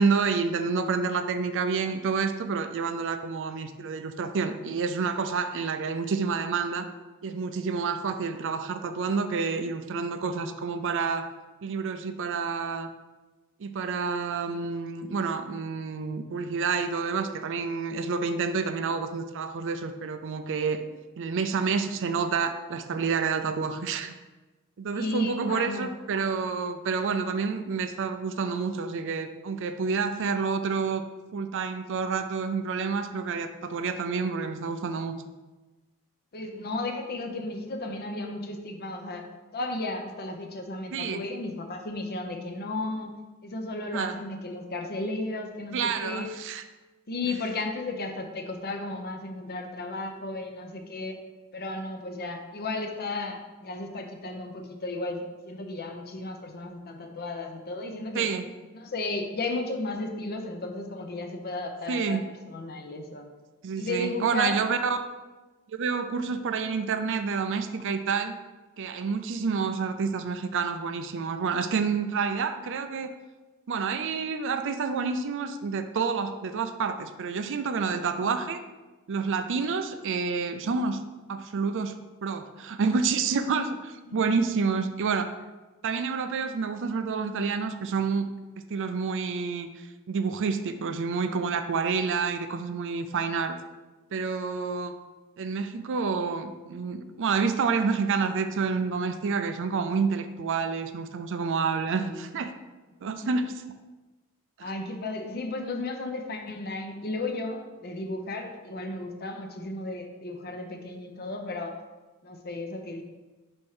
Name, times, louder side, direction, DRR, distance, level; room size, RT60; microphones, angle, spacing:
voice 1, 0.0-6.9 7.2-11.3 11.6-12.9 13.6-20.8 21.2-24.1 24.8-31.0 31.3-35.2 40.9-41.2 43.9-44.1 45.7-46.6 58.1-58.4 61.9-62.2 63.6-65.0 65.7-68.4 68.8-73.1 73.7-78.6 79.1-81.0 81.3-81.9 82.2-85.3 85.8-88.3 88.7-89.7 90.1-93.6 94.1-94.9 95.4-102.5 103.0-103.5 104.6-104.7, right 5 dB, 55° right, 9 dB, 0.4 m, -28 dB
voice 2, 24.9-25.9 36.3-39.3 39.5-43.1 43.4-46.3 47.1-51.2 51.5-58.3 58.7-62.2 62.5-63.3 63.8-64.6 84.1-84.4 103.0-103.2 104.6-111.8 112.2-113.0, left 2 dB, 45° left, 4 dB, 0.7 m, -34 dB
5.7 x 4.4 x 4.8 m, 1.2 s
head